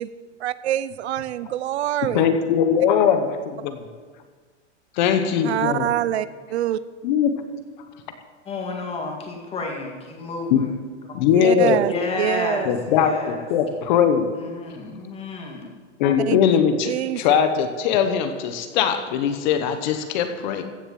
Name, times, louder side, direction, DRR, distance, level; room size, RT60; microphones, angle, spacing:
voice 1, 0.4-2.2 5.4-6.8 11.3-12.7 16.3-16.6 16.9-17.2, right 12 dB, 65° right, 16 dB, 0.6 m, -25 dB
voice 2, 2.0-3.8 5.0-5.9 7.0-7.4 10.5-10.7 11.1-11.8 12.7-14.3 16.0-20.6, left 8 dB, 40° left, 8 dB, 1.0 m, -20 dB
voice 3, 8.5-10.7 11.9-13.5 14.3-15.7, left 4 dB, 15° left, 2 dB, 2.0 m, -31 dB
15.0 x 6.8 x 7.6 m, 1.5 s
hypercardioid pair, 155°, 36 cm